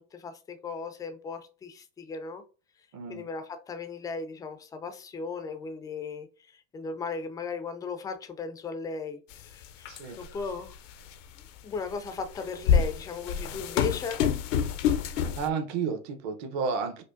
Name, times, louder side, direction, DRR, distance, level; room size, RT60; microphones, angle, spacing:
voice 1, 0.0-2.4 3.1-6.3 6.5-9.9 10.2-10.8 11.6-14.2, left 4 dB, 10° left, 0.3 m, -36 dB
voice 2, 2.9-3.3 9.9-10.2 15.1-17.0, right 5 dB, 45° right, 0.9 m, -32 dB
sound 1, 9.3-9.4 9.8-10.4 11.1-11.2 12.2-15.5, left 8 dB, 85° left, 0.6 m, -26 dB
4.9 x 2.1 x 2.5 m
supercardioid pair, 115°, 36 cm